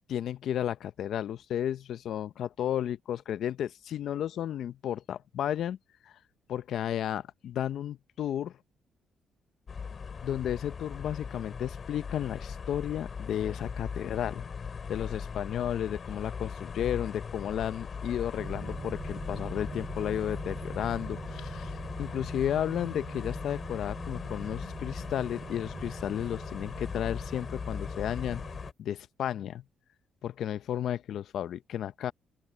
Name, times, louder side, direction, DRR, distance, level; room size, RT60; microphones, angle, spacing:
voice 1, 0.1-5.8 6.5-8.5 10.2-14.4 14.9-21.7 22.0-28.4 28.8-29.6 30.2-32.1, left 10 dB, 70° left, 0.6 m, -33 dB
sound 1, 9.7-28.7, left 6 dB, 45° left, 4.3 m, -39 dB
sound 2, 18.4-28.7, right 5 dB, 40° right, 4.2 m, -43 dB
open air
cardioid pair, 90°, 0 cm